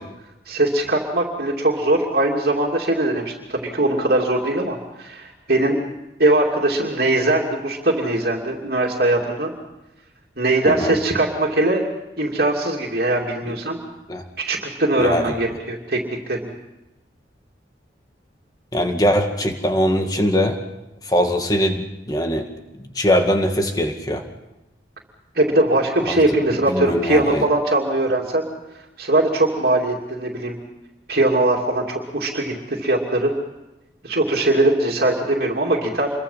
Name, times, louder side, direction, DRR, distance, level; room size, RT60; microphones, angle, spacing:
voice 1, 0.5-5.8 6.2-9.5 10.4-11.8 12.2-13.8 14.5-16.0 16.3-16.5 25.3-28.5 29.0-30.6 31.1-33.3 34.0-36.1, right 2 dB, 55° right, -1 dB, 2.8 m, -20 dB
voice 2, 10.6-11.0 14.1-14.2 15.0-15.4 18.7-20.6 21.1-22.4 22.8-24.2 26.1-26.2 26.7-27.5, equal, 20° left, 4 dB, 2.1 m, -21 dB
27.5 x 23.0 x 5.8 m, 0.97 s
head